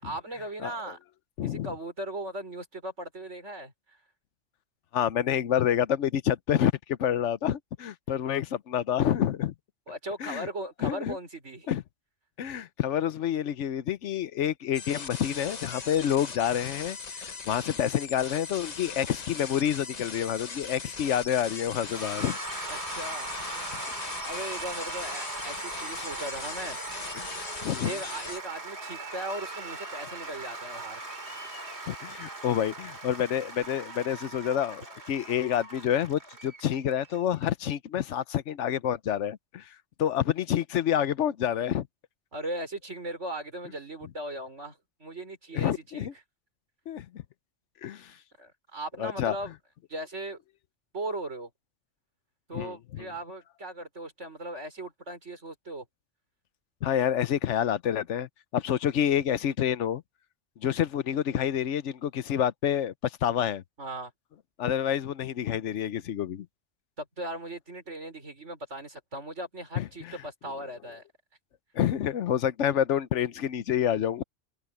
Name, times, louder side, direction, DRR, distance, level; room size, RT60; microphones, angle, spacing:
voice 1, 0.0-1.0 1.4-3.7 9.9-11.7 22.7-23.3 24.3-26.8 27.8-31.0 42.3-46.1 47.9-48.0 48.4-49.6 49.9-50.4 50.9-51.5 52.5-55.9 63.8-64.1 67.0-71.0, right 1 dB, 85° right, 5.6 m, -38 dB
voice 2, 1.4-1.7 4.9-9.5 10.2-10.5 10.8-11.2 11.7-11.8 12.4-22.4 27.1-27.3 27.6-27.9 31.9-39.7 40.0-41.9 45.5-46.1 46.9-47.2 47.8-48.1 49.0-49.3 52.5-53.1 56.8-60.0 60.6-63.6 64.6-66.5 69.8-70.2 71.7-74.2, left 10 dB, 80° left, 1.1 m, -28 dB
sound 1, 14.7-28.4, left 5 dB, 40° left, 1.0 m, -40 dB
Cheering / Applause / Crowd, 21.8-37.4, right 2 dB, 65° right, 3.3 m, -39 dB
omnidirectional pair, 1.2 m